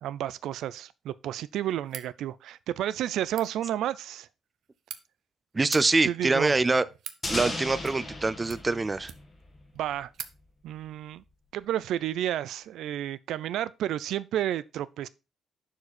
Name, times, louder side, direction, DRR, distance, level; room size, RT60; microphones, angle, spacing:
voice 1, 0.0-4.3 6.0-6.5 9.7-10.1 10.6-11.2 11.5-15.1, right 11 dB, 85° right, 0.5 m, -31 dB
sound 1, 1.8-2.1 3.2-3.5 4.5-5.0 5.6-5.8 6.6-7.2 7.8-8.2 8.5-9.4 9.8-9.9 10.1-10.3, right 9 dB, 65° right, 0.8 m, -42 dB
voice 2, 5.5-6.8 7.3-9.1, right 3 dB, 15° right, 0.4 m, -24 dB
sound 2, 7.2-10.0, left 2 dB, 20° left, 1.6 m, -36 dB
11.0 x 4.8 x 4.2 m
cardioid pair, 175°, 0 cm